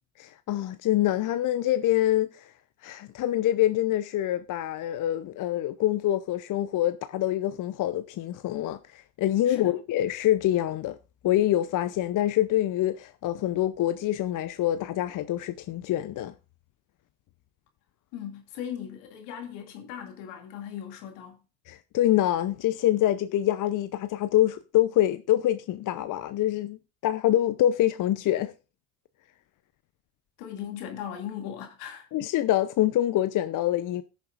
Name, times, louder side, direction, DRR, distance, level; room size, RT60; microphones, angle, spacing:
voice 1, 0.2-2.5 2.8-11.0 11.2-16.3 21.7-28.5 32.1-34.0, left 13 dB, 45° left, 0.6 m, -25 dB
voice 2, 18.1-21.4 30.4-32.1, left 9 dB, 70° left, 2.4 m, -38 dB
19.0 x 6.7 x 2.5 m
hypercardioid pair, 65°, 43 cm